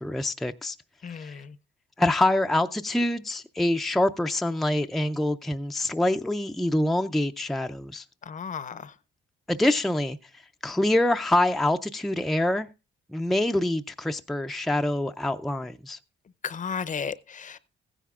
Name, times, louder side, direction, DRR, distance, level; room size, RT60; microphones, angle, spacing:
voice 1, 0.0-0.8 1.2-1.3 2.0-8.0 9.5-10.2 10.6-12.7 13.1-16.0, left 1 dB, ahead, 0.4 m, -25 dB
voice 2, 1.0-1.5 8.3-8.9 16.4-17.6, left 6 dB, 40° left, 0.6 m, -34 dB
15.0 x 10.0 x 2.4 m
cardioid pair, 90°, 20 cm